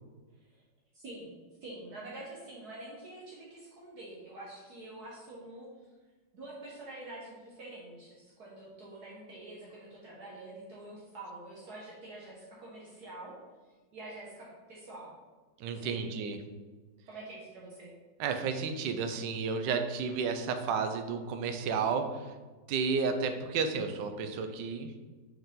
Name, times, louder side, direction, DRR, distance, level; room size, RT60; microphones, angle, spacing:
voice 1, 0.9-1.3 1.6-5.7 6.3-13.4 13.9-15.1 15.7-16.1 17.1-17.9, right 2 dB, 60° right, -5 dB, 1.6 m, -46 dB
voice 2, 15.6-16.4 18.2-22.2 22.7-24.9, right 5 dB, 80° right, 7 dB, 1.3 m, -32 dB
5.4 x 4.7 x 3.7 m, 1.3 s
omnidirectional pair, 1.9 m